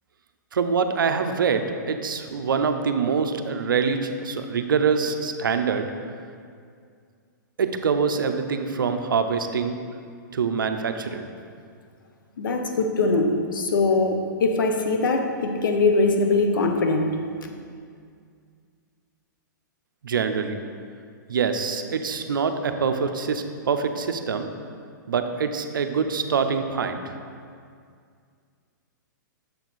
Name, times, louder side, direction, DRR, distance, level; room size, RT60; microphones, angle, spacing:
voice 1, 0.5-5.9 7.6-9.7 10.3-11.3 20.0-20.6 21.3-24.5 25.1-27.1, right 5 dB, 90° right, 7 dB, 0.5 m, -25 dB
voice 2, 12.4-17.1, left 3 dB, 80° left, 4 dB, 0.7 m, -22 dB
6.8 x 4.5 x 4.0 m, 2.2 s
hypercardioid pair, 135°, 11 cm